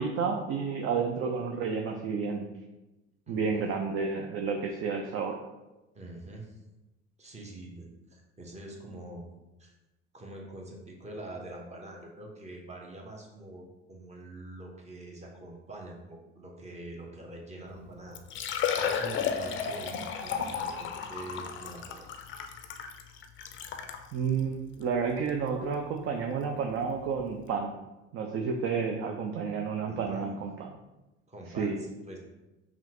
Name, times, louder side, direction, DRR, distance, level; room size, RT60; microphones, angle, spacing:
voice 1, 0.0-2.5 3.3-5.4 24.1-27.8 28.1-30.7 31.6-31.8, right 5 dB, 40° right, 2 dB, 0.5 m, -31 dB
voice 2, 3.3-3.6 5.9-6.5 7.2-9.2 9.6-9.7 10.1-18.2 18.8-22.1 29.8-30.3 31.3-32.2, right 1 dB, 20° right, 0 dB, 1.0 m, -45 dB
Liquid, 17.7-17.8 18.1-24.0 24.7-24.8 25.3-25.4 27.0-27.1 27.3-27.4, left 7 dB, 35° left, 0.5 m, -33 dB
5.5 x 2.4 x 2.9 m, 1.0 s
figure-of-eight pair, 65°, 34 cm